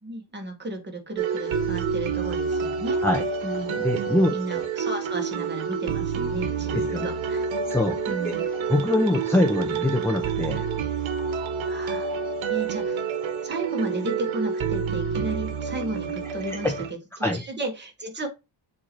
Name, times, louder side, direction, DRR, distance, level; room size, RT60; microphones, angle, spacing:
voice 1, 0.0-3.0 3.4-3.8 4.3-7.5 8.1-8.5 11.7-12.2 12.5-13.0 13.4-18.3, right 2 dB, 20° right, 3 dB, 1.5 m, -34 dB
sound 1, 1.2-16.9, right 6 dB, 75° right, 1.1 m, -28 dB
voice 2, 3.8-4.7 6.7-7.1 7.7-8.0 8.2-8.3 8.7-10.6 16.5-16.8 17.2-17.4, left 1 dB, 5° left, 3 dB, 0.6 m, -24 dB
7.5 x 2.8 x 4.4 m, 0.25 s
wide cardioid pair, 160°, 47 cm